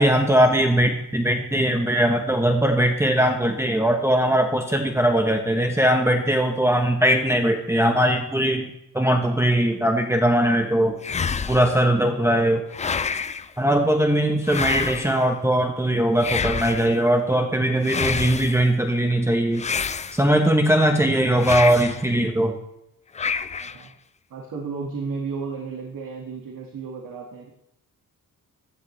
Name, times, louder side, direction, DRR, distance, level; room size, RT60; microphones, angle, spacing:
voice 1, 0.0-8.7 8.9-11.0 11.5-12.6 13.6-19.7 20.1-22.6, right 1 dB, 10° right, 2 dB, 0.9 m, -20 dB
sound 1, 11.0-11.8 12.7-13.5 14.4-15.3 16.2-17.0 17.8-18.6 19.6-20.5 21.4-22.1 23.1-23.8, left 5 dB, 20° left, 0.3 m, -28 dB
voice 2, 23.6-23.9 24.3-27.5, right 5 dB, 70° right, -1 dB, 2.0 m, -33 dB
15.5 x 11.5 x 3.3 m, 0.84 s
wide cardioid pair, 145°, 35 cm